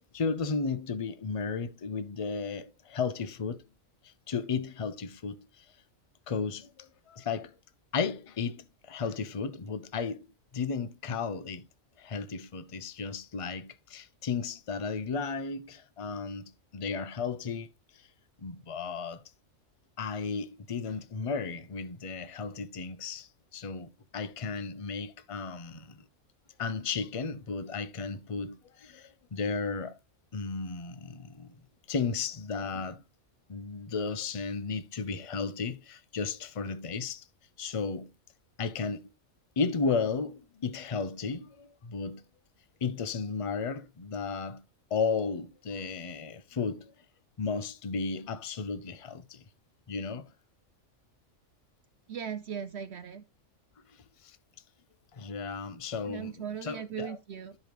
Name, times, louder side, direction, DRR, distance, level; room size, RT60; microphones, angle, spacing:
voice 1, 0.1-3.6 4.0-5.7 6.3-7.5 7.9-10.3 10.5-11.6 12.0-17.7 18.4-19.2 20.0-26.0 26.6-30.0 30.3-31.6 31.9-33.0 33.5-37.2 37.6-38.1 38.6-39.1 39.6-42.2 42.8-44.6 44.9-46.9 47.4-49.4 49.9-50.3 54.2-54.4 55.1-56.3 56.6-57.2, left 5 dB, 35° left, 0.6 m, -34 dB
voice 2, 52.1-53.2 56.1-57.6, right 8 dB, 60° right, 0.8 m, -38 dB
13.0 x 5.1 x 3.1 m
omnidirectional pair, 1.4 m